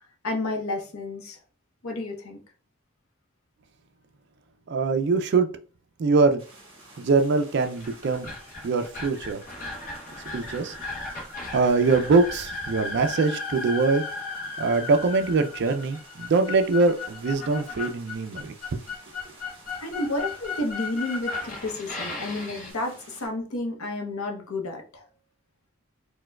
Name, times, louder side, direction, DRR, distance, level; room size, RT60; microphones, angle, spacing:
voice 1, 0.2-1.4 1.8-2.4 19.8-25.1, left 2 dB, 75° left, 3 dB, 0.7 m, -31 dB
voice 2, 4.7-5.5 6.0-6.4 7.0-8.4 8.6-9.4 10.3-10.8 11.5-14.0 14.6-18.8, right 4 dB, 50° right, 7 dB, 0.3 m, -23 dB
sound 1, 6.4-23.3, right 2 dB, 30° right, 1.5 m, -51 dB
sound 2, 7.6-22.7, left 3 dB, 40° left, 0.7 m, -36 dB
4.4 x 2.2 x 2.2 m, 0.38 s
head